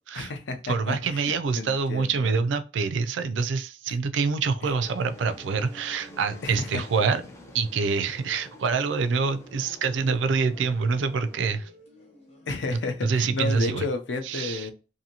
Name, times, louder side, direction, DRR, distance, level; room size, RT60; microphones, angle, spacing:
voice 1, 0.1-2.3 4.6-4.7 6.4-6.8 12.5-14.7, left 3 dB, 75° left, 0.5 m, -32 dB
voice 2, 0.7-7.2 7.5-11.7 13.0-13.8 14.3-14.7, right 5 dB, 80° right, 0.4 m, -26 dB
sound 1, 4.6-13.9, left 1 dB, 35° left, 0.9 m, -54 dB
sound 2, 4.6-11.5, equal, 15° left, 0.4 m, -48 dB
2.7 x 2.6 x 2.7 m
head